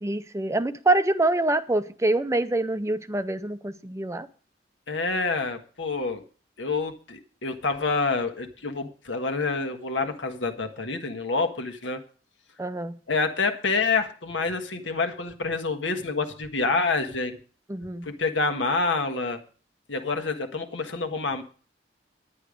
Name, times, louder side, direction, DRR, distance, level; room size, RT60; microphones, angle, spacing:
voice 1, 0.0-4.3 12.6-12.9 17.7-18.1, right 2 dB, 15° right, 12 dB, 0.5 m, -25 dB
voice 2, 4.9-6.2 6.6-12.0 13.1-17.4 18.0-19.4 19.9-21.4, left 3 dB, 85° left, 6 dB, 1.5 m, -27 dB
10.0 x 10.0 x 5.0 m, 0.40 s
head